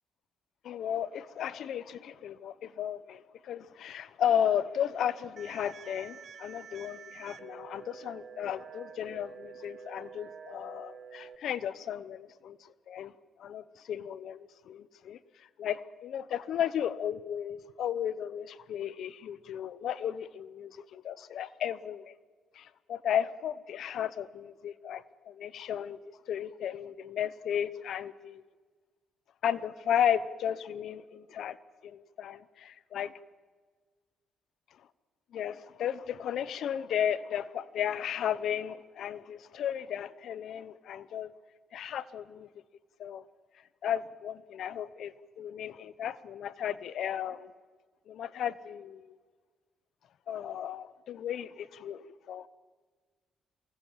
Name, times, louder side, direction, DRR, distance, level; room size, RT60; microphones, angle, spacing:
voice 1, 0.6-13.1 13.4-22.1 22.5-26.0 26.3-28.4 29.4-31.6 31.8-33.1 35.3-41.3 41.7-42.5 43.0-43.2 43.8-47.5 48.1-49.2 50.3-52.5, left 9 dB, 70° left, 17 dB, 0.9 m, -34 dB
sound 1, 5.4-11.4, right 7 dB, 55° right, 1.6 m, -48 dB
23.5 x 20.0 x 7.5 m, 1.5 s
cardioid pair, 90°, 0 cm